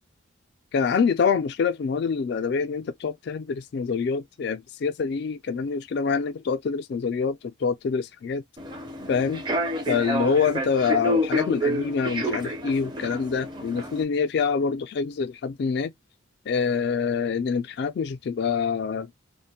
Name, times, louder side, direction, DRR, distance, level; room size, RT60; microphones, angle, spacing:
voice 1, 0.7-8.4 9.1-9.4 9.9-15.9 16.5-19.1, left 5 dB, 55° left, 0.3 m, -26 dB
Human voice / Subway metro underground, 8.6-14.0, equal, 20° right, 0.4 m, -29 dB
2.4 x 2.1 x 2.8 m
head